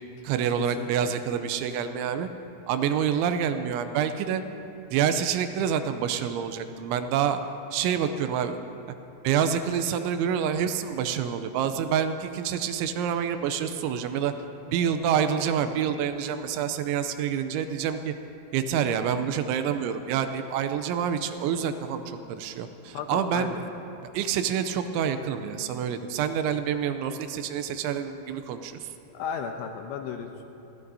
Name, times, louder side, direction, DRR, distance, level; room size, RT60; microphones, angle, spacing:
voice 1, 0.2-2.3 2.7-4.4 4.9-7.4 7.7-8.6 9.2-14.3 14.7-18.1 18.5-23.6 24.1-28.7, right 8 dB, 85° right, 9 dB, 2.9 m, -27 dB
voice 2, 0.8-1.1 22.9-23.6 29.1-30.4, left 7 dB, 85° left, 5 dB, 2.6 m, -34 dB
26.5 x 15.5 x 2.7 m, 2.9 s
omnidirectional pair, 5.4 m